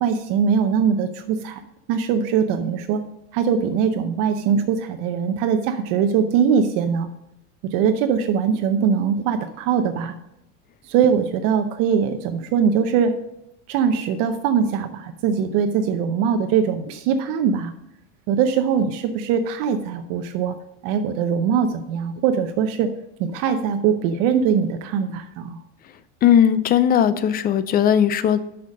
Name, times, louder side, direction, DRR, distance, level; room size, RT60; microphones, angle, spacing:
voice 1, 0.0-1.6 1.9-3.0 3.3-7.1 7.6-10.1 10.9-13.1 13.7-17.7 18.3-20.5 20.8-22.9 23.2-25.6, right 7 dB, 60° right, 7 dB, 0.7 m, -21 dB
voice 2, 26.2-28.4, left 9 dB, 25° left, 14 dB, 0.4 m, -17 dB
6.4 x 5.7 x 6.3 m, 0.84 s
supercardioid pair, 130°, 38 cm